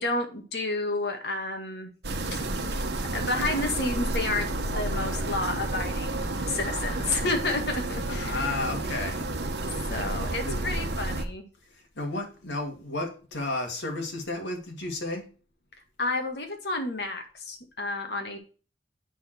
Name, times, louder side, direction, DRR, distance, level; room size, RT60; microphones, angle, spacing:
voice 1, 0.0-1.9 2.3-2.4 3.1-4.5 4.7-8.5 9.9-11.5 16.0-18.4, left 2 dB, 65° left, 4 dB, 1.9 m, -30 dB
sound 1, 2.0-11.2, right 2 dB, 65° right, 1.2 m, -31 dB
voice 2, 8.1-9.3 10.4-10.6 12.0-15.2, left 2 dB, 80° left, 2 dB, 2.4 m, -32 dB
8.1 x 6.4 x 4.4 m, 0.37 s
head